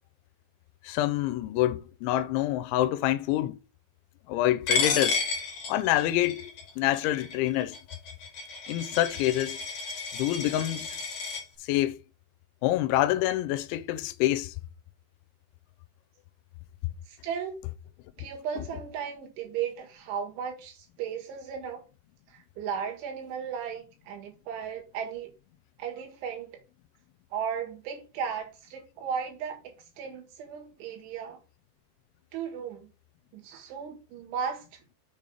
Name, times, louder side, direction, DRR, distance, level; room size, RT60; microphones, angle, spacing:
voice 1, 0.8-3.6 4.3-5.2 5.7-7.7 8.7-9.6 10.1-11.0 11.6-12.0 12.6-14.5, left 14 dB, 80° left, 3.0 m, -26 dB
Coin (dropping), 4.7-11.4, left 5 dB, 45° left, 2.5 m, -32 dB
voice 2, 17.1-17.6 18.2-21.8 22.3-25.3 25.8-26.6 27.3-31.4 32.3-32.9 33.3-34.6, right 7 dB, 80° right, 4.1 m, -35 dB
7.2 x 5.5 x 5.0 m
omnidirectional pair, 5.5 m